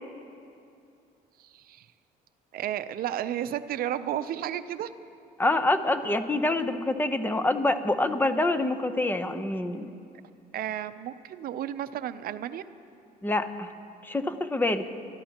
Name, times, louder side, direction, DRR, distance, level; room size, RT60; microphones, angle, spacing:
voice 1, 1.4-1.9 2.5-4.9 10.5-12.6, right 11 dB, 60° right, 12 dB, 0.6 m, -32 dB
voice 2, 5.4-9.9 13.2-13.7 14.0-14.9, left 2 dB, 10° left, 9 dB, 0.8 m, -26 dB
28.5 x 13.5 x 2.9 m, 2.6 s
cardioid pair, 110°, 17 cm